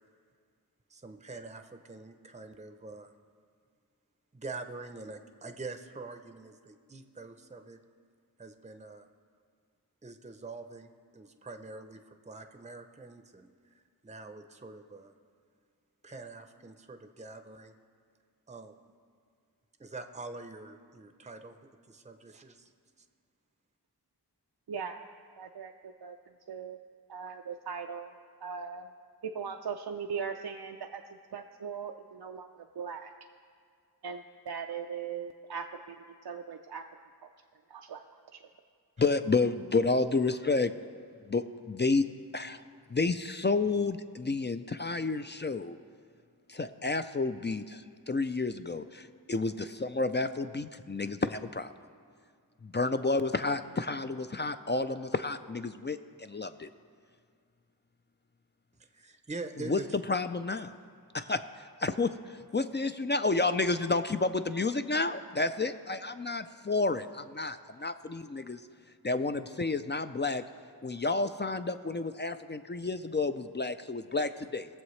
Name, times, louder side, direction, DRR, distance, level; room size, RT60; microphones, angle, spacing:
voice 1, 0.9-3.1 4.3-7.8 8.4-9.1 10.0-15.1 16.0-17.7 18.5-18.7 19.8-21.6 21.9-22.7 58.8-59.9, right 3 dB, 20° right, 7 dB, 0.6 m, -45 dB
voice 2, 24.7-25.1 25.4-26.2 26.5-26.8 27.1-28.1 28.4-28.9 29.2-31.0 31.3-33.1 34.0-36.8 37.7-38.0 38.3-38.4, right 6 dB, 75° right, 4 dB, 0.5 m, -39 dB
voice 3, 39.0-40.7 41.3-42.0 42.3-42.6 42.9-45.8 46.5-51.7 52.6-56.7 59.7-59.8 60.1-60.8 61.1-68.6 69.0-70.4 70.8-74.7, left 3 dB, 30° left, 10 dB, 0.4 m, -30 dB
19.5 x 7.3 x 3.2 m, 2.2 s
wide cardioid pair, 45°, 39 cm